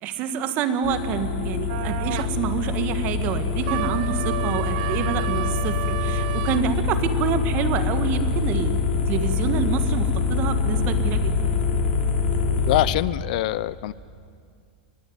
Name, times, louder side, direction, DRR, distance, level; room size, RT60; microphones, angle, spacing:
voice 1, 0.0-8.8 9.1-11.5, right 7 dB, 35° right, 10 dB, 1.8 m, -27 dB
sound 1, 0.8-12.8, left 5 dB, 85° left, 4.3 m, -24 dB
sound 2, 1.7-2.3 3.6-6.7, right 17 dB, 50° right, 0.6 m, -31 dB
voice 2, 12.7-13.9, left 15 dB, 55° left, 18 dB, 0.6 m, -23 dB
24.5 x 21.0 x 9.5 m, 2.2 s
supercardioid pair, 165°, 5 cm